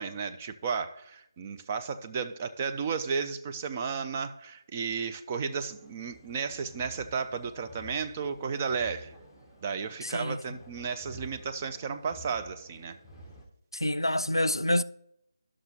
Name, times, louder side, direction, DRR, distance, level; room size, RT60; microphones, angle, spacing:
voice 1, 0.0-9.1 9.6-13.0, right 5 dB, 20° right, 0.4 m, -33 dB
sound 1, 5.5-13.5, equal, ahead, 0.8 m, -51 dB
voice 2, 10.0-10.4 13.7-14.8, left 1 dB, 90° left, 0.3 m, -27 dB
11.5 x 6.2 x 2.8 m
figure-of-eight pair, 155°, 2 cm